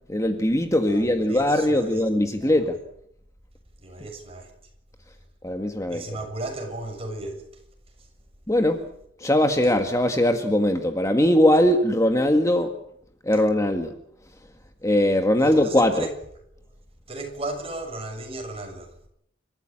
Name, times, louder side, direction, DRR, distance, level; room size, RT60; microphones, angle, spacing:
voice 1, 0.1-2.8 5.4-6.0 8.5-8.9 9.2-12.8 13.2-13.9 14.8-16.1, left 1 dB, 15° left, 1.7 m, -21 dB
voice 2, 0.9-2.0 2.4-2.8 3.8-4.5 5.9-7.6 8.0-8.1 15.4-16.1 17.1-19.0, right 2 dB, 30° right, 7.0 m, -35 dB
29.5 x 14.5 x 8.9 m
head